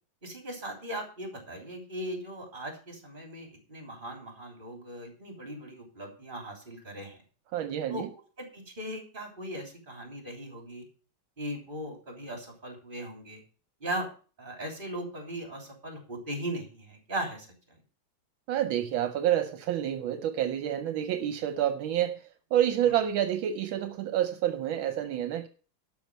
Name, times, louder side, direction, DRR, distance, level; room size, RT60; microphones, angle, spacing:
voice 1, 0.2-7.2 7.9-8.0 8.4-10.8 11.4-13.4 13.8-14.1 14.4-17.5, right 1 dB, 25° right, 3.5 m, -38 dB
voice 2, 7.5-8.1 18.5-22.2 22.5-25.5, right 11 dB, 75° right, 1.5 m, -28 dB
12.0 x 5.8 x 7.3 m
omnidirectional pair, 2.2 m